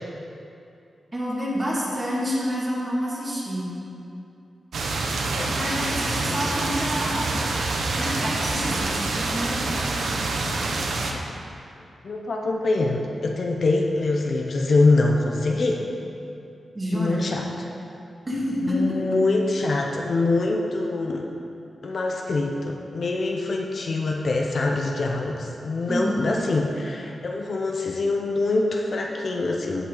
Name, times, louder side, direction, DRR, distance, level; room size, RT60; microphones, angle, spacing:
voice 1, 1.1-3.7 5.5-7.4 7.9-9.9 10.4-10.5 16.7-17.3 18.3-18.8 25.9-26.2, equal, 20° right, -6 dB, 2.1 m, -28 dB
sound 1, 4.7-11.1, right 3 dB, 85° right, 0.9 m, -26 dB
voice 2, 12.0-15.8 16.9-17.5 18.6-21.3 21.8-29.9, left 2 dB, 45° left, 1 dB, 0.7 m, -24 dB
15.5 x 5.6 x 3.9 m, 2.6 s
wide cardioid pair, 160°, 0 cm